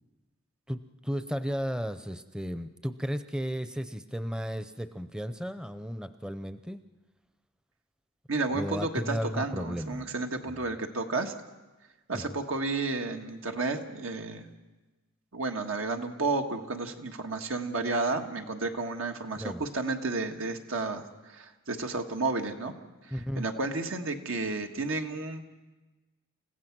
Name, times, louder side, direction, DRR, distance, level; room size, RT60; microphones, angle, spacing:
voice 1, 0.7-6.8 8.5-10.1 10.4-10.6 12.1-12.4 19.4-19.7 23.1-23.5, equal, 5° right, 10 dB, 0.6 m, -34 dB
voice 2, 8.3-11.3 12.1-14.5 15.3-22.7 23.4-25.5, right 3 dB, 85° right, 4 dB, 1.7 m, -32 dB
29.0 x 15.5 x 6.1 m, 1.2 s
head